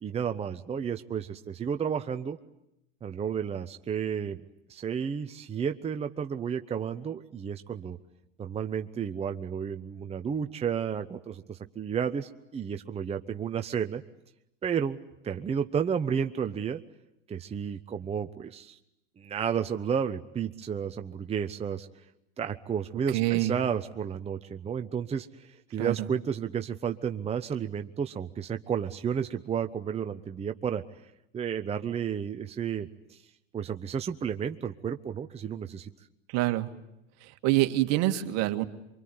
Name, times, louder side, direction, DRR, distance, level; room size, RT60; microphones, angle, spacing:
voice 1, 0.0-2.4 3.0-4.4 4.7-8.0 8.4-14.0 14.6-15.0 15.2-16.8 17.3-18.8 19.2-21.9 22.4-30.8 31.3-33.2 33.5-35.9, right 7 dB, 20° right, 7 dB, 0.9 m, -32 dB
voice 2, 23.1-23.5 25.8-25.9 36.3-36.7 37.4-38.6, right 17 dB, 55° right, 8 dB, 2.0 m, -25 dB
24.5 x 24.5 x 9.6 m, 0.86 s
supercardioid pair, 110°, 31 cm